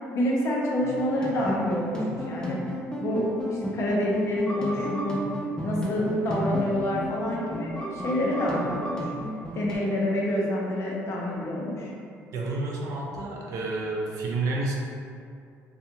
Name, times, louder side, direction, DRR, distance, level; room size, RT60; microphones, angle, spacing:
voice 1, 0.1-2.6 3.0-3.2 3.5-5.2 5.6-9.1 9.5-11.9, left 1 dB, 50° left, -3 dB, 0.7 m, -27 dB
sound 1, 0.8-9.8, equal, 15° left, 0.6 m, -32 dB
voice 2, 12.3-14.8, right 2 dB, 70° right, -2 dB, 0.5 m, -30 dB
2.5 x 2.3 x 2.8 m, 2.4 s
supercardioid pair, 85°, 6 cm